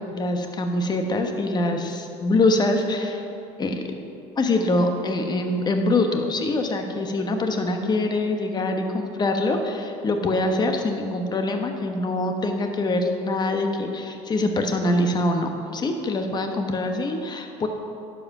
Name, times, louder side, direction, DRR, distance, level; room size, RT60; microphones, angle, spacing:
voice 1, 0.1-3.2 3.6-3.7 4.4-17.7, left 2 dB, 30° left, 5 dB, 1.1 m, -24 dB
11.5 x 4.9 x 6.0 m, 2.7 s
supercardioid pair, 105°, 14 cm